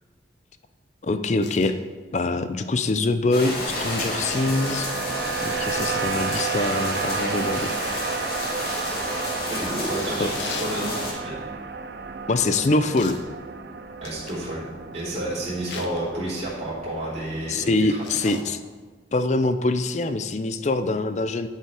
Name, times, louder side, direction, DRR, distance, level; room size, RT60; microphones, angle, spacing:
voice 1, 1.0-1.7 2.1-4.9 5.4-7.7 10.2-10.3 12.3-13.2 17.5-18.6 19.1-21.5, left 2 dB, 40° left, 10 dB, 0.5 m, -24 dB
sound 1, 1.4-1.7 4.6-5.0 7.7-8.1 10.3-10.7 13.0-13.3 14.0-14.4 15.7-16.0 18.0-18.5 19.9-20.0, left 5 dB, 85° left, 0.9 m, -38 dB
sound 2, 3.3-11.1, left 1 dB, 55° left, 2.1 m, -30 dB
sound 3, 3.6-17.8, right 6 dB, 60° right, 0.6 m, -32 dB
voice 2, 9.5-11.4 14.0-14.7 14.9-18.0 18.2-18.3, right 1 dB, 35° right, -9 dB, 3.1 m, -31 dB
11.0 x 5.6 x 4.8 m, 1.4 s
head